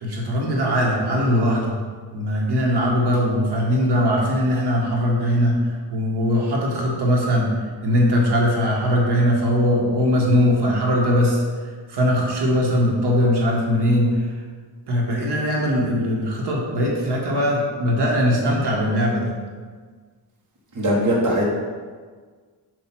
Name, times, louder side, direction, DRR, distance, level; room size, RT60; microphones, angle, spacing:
voice 1, 0.0-1.7 2.1-5.6 5.9-7.5 7.8-11.4 11.9-14.2 14.9-19.3, equal, 65° right, -2 dB, 1.4 m, -20 dB
voice 2, 20.7-21.4, equal, 45° right, -4 dB, 1.3 m, -20 dB
7.5 x 2.7 x 5.9 m, 1.5 s
wide cardioid pair, 155°, 42 cm